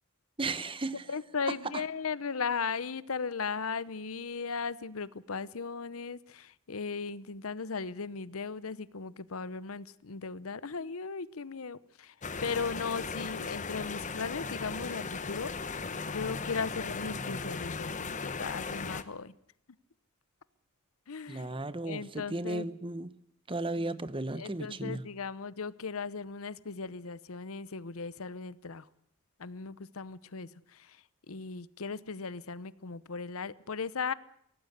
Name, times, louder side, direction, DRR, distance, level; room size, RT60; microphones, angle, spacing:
voice 1, 0.4-1.1 1.7-1.8 21.3-23.1 23.5-25.0, right 2 dB, 25° right, 14 dB, 1.0 m, -35 dB
voice 2, 1.1-12.1 12.4-15.5 16.1-19.3 21.1-21.5 21.8-22.7 23.8-23.9 24.4-28.9 29.4-34.1, left 5 dB, 75° left, 18 dB, 0.8 m, -37 dB
sound 1, 12.2-19.0, left 4 dB, 35° left, 1.0 m, -37 dB
24.0 x 17.5 x 8.1 m, 0.71 s
head